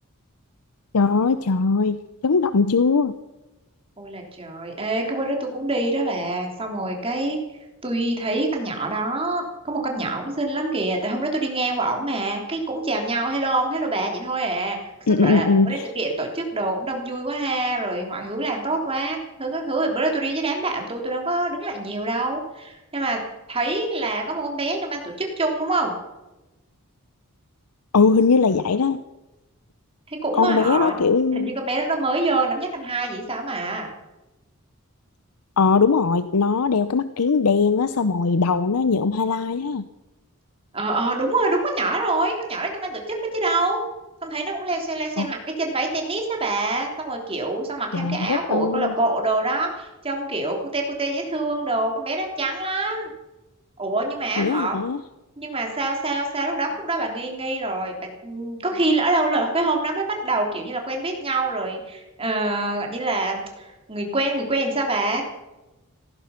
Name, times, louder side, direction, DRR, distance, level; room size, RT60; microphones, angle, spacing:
voice 1, 0.9-3.1 15.1-15.9 27.9-29.0 30.4-31.5 35.6-39.8 45.2-45.3 47.9-48.9 54.4-55.0, left 4 dB, 85° left, 12 dB, 0.7 m, -20 dB
voice 2, 4.0-7.4 7.8-23.2 23.5-25.9 30.1-30.9 31.3-33.9 40.7-43.8 44.2-53.1 53.8-54.8 55.4-65.2, right 2 dB, 25° right, 2 dB, 3.3 m, -25 dB
16.5 x 15.0 x 5.8 m, 1.0 s
head